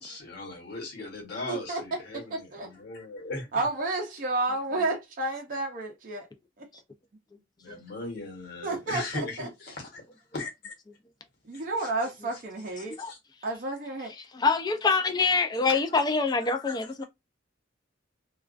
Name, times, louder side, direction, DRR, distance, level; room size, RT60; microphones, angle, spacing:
voice 1, 0.0-3.6 7.6-10.0 10.3-10.7 11.5-11.9 12.8-13.2 15.6-15.8 16.4-17.0, left 2 dB, 55° left, 1.0 m, -39 dB
voice 2, 1.5-1.8 2.3-2.7 3.5-6.3 8.6-9.5 11.5-13.0 13.4-14.1, right 2 dB, 45° right, 0.5 m, -31 dB
voice 3, 14.2-17.0, left 4 dB, 20° left, 0.3 m, -25 dB
2.3 x 2.2 x 2.4 m
head